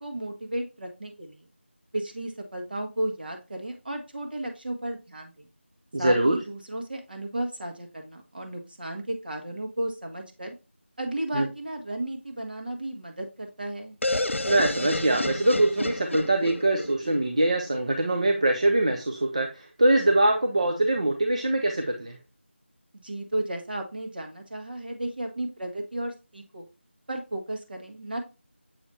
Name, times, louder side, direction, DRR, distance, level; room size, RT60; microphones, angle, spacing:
voice 1, 0.0-1.5 1.9-5.5 6.0-10.5 11.0-14.0 23.0-26.7 27.1-28.2, right 1 dB, 50° right, 3 dB, 1.7 m, -34 dB
voice 2, 5.9-6.4 11.3-11.5 14.5-22.2, right 1 dB, 35° right, 4 dB, 0.7 m, -23 dB
sound 1, 14.0-17.8, left 2 dB, 80° left, 0.5 m, -30 dB
7.2 x 5.0 x 2.6 m, 0.28 s
figure-of-eight pair, 170°, 7 cm